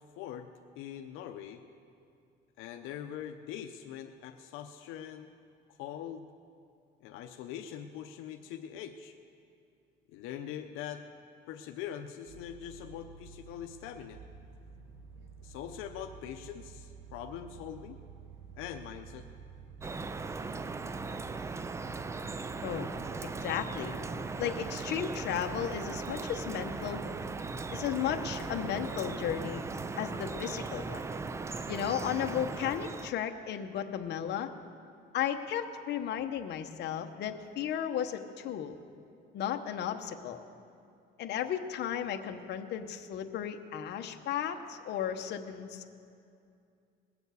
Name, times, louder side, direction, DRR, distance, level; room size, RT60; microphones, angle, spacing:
voice 1, 0.2-0.5 0.8-1.6 2.6-5.3 5.8-6.3 7.0-9.1 10.1-11.0 11.5-14.2 15.4-18.0 18.6-19.3, left 10 dB, 85° left, 5 dB, 0.7 m, -42 dB
sound 1, 12.2-30.0, right 6 dB, 70° right, 1.4 m, -51 dB
Drip, 19.8-33.1, right 4 dB, 15° right, 0.3 m, -38 dB
voice 2, 23.4-23.9 24.4-27.0 27.7-29.6 30.0-31.0 31.7-34.5 35.1-38.8 39.3-40.4 41.2-45.9, left 9 dB, 55° left, 5 dB, 0.9 m, -34 dB
20.5 x 7.1 x 8.1 m, 2.5 s
cardioid pair, 140°, 20 cm